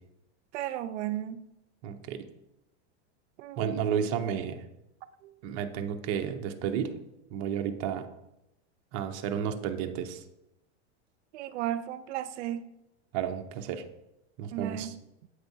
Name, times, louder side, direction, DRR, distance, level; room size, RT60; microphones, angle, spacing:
voice 1, 0.5-1.4 3.4-3.7 5.2-5.3 11.3-12.6 14.5-15.0, right 12 dB, 90° right, 0.5 m, -34 dB
voice 2, 1.8-2.2 3.6-4.6 5.4-6.9 7.3-8.1 8.9-10.2 13.1-13.8 14.4-14.9, right 8 dB, 35° right, 0.4 m, -32 dB
7.8 x 4.6 x 2.6 m
supercardioid pair, 160°, 34 cm